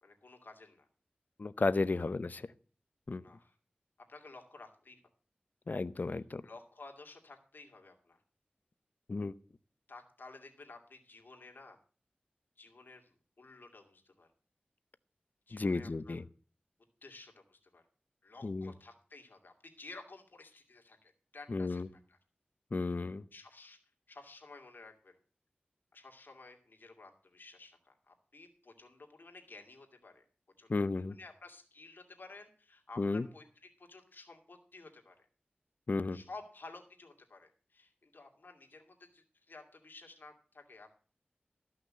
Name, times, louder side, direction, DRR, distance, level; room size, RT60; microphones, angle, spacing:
voice 1, 0.0-0.9 2.0-2.1 3.2-3.6 4.1-5.0 6.4-8.2 9.9-11.8 12.6-14.3 15.5-16.2 17.0-17.8 18.2-22.2 23.3-23.8 24.1-25.2 25.9-30.2 30.6-33.4 33.8-35.3 36.1-40.9, left 3 dB, 70° left, 3 dB, 2.4 m, -53 dB
voice 2, 1.4-2.5 3.1-3.2 5.7-6.4 9.1-9.3 15.5-16.2 18.4-18.7 21.5-21.9 22.7-23.2 30.7-31.1 33.0-33.3 35.9-36.2, left 3 dB, 55° left, 16 dB, 0.7 m, -33 dB
13.5 x 5.9 x 7.5 m, 0.41 s
wide cardioid pair, 60°, 3 cm